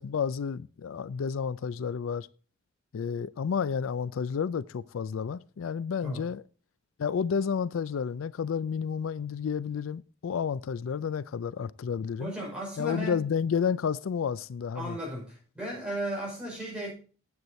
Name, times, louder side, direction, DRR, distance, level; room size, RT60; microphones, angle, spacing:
voice 1, 0.0-2.3 2.9-6.4 7.0-12.3 12.8-15.0, left 6 dB, 85° left, 0.4 m, -31 dB
voice 2, 12.2-13.2 14.7-16.9, right 1 dB, 5° right, 5.5 m, -35 dB
9.5 x 8.0 x 4.2 m
head